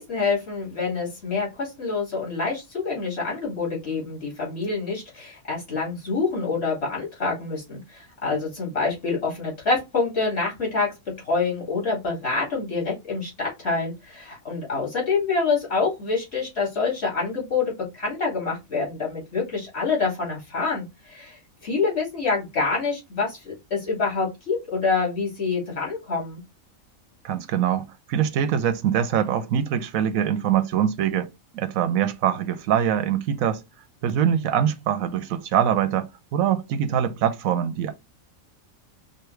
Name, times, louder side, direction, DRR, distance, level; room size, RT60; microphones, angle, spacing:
voice 1, 0.0-10.9 11.2-26.4, left 4 dB, 50° left, 2.6 m, -26 dB
voice 2, 27.2-31.3 31.5-33.6 34.0-37.9, right 9 dB, 85° right, 1.1 m, -23 dB
5.4 x 2.0 x 3.2 m
omnidirectional pair, 1.4 m